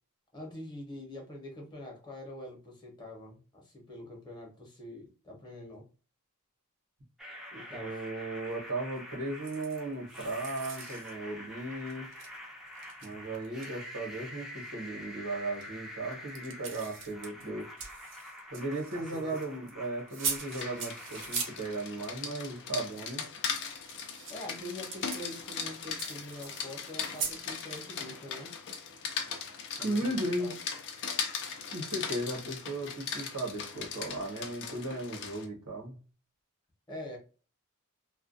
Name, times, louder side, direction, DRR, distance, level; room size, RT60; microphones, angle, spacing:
voice 1, 0.3-5.9 7.5-8.0 18.9-19.4 24.0-28.5 29.8-30.5 36.9-37.2, left 1 dB, 20° left, -1 dB, 0.8 m, -45 dB
sound 1, 7.2-23.1, equal, ahead, 0.5 m, -47 dB
voice 2, 7.7-12.1 13.0-17.7 18.5-23.2 29.8-30.5 31.7-36.0, right 2 dB, 85° right, 0 dB, 1.0 m, -36 dB
sound 2, 9.4-9.8 10.1-11.1 11.7-12.3 12.7-13.7 15.5-15.6 16.1-19.7 20.1-21.6 23.7-27.4, right 5 dB, 60° right, 0.6 m, -40 dB
Rain, 20.3-35.5, left 6 dB, 55° left, 0.5 m, -39 dB
2.3 x 2.1 x 2.5 m, 0.36 s
head